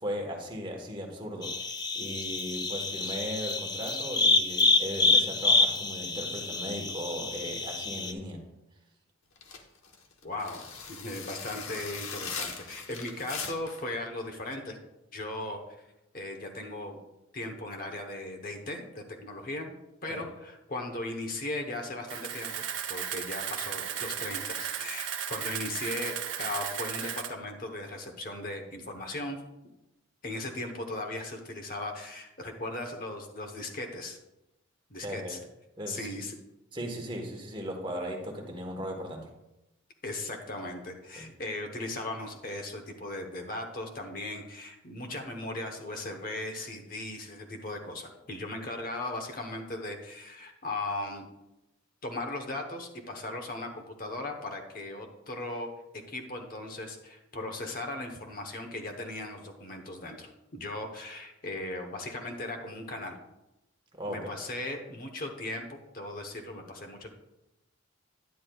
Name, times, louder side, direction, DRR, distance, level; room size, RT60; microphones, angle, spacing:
voice 1, 0.0-8.4 20.1-20.2 35.0-35.3 35.8-36.1 36.7-39.3 41.1-41.3 63.9-64.3, equal, 25° right, 2 dB, 1.2 m, -37 dB
sound 1, 1.4-8.1, left 3 dB, 20° left, 0.4 m, -27 dB
sound 2, 9.4-13.8, left 5 dB, 90° left, 1.1 m, -40 dB
voice 2, 10.2-10.6 10.9-14.8 15.1-15.6 16.1-17.0 17.3-19.7 20.0-22.6 22.9-29.4 30.2-34.2 34.9-35.4 35.9-36.3 40.0-51.2 52.0-55.7 56.1-63.2 64.1-67.1, left 2 dB, 45° left, 3 dB, 1.0 m, -37 dB
Camera, 22.1-27.3, right 9 dB, 70° right, 0.8 m, -35 dB
10.5 x 9.5 x 2.3 m, 0.93 s
head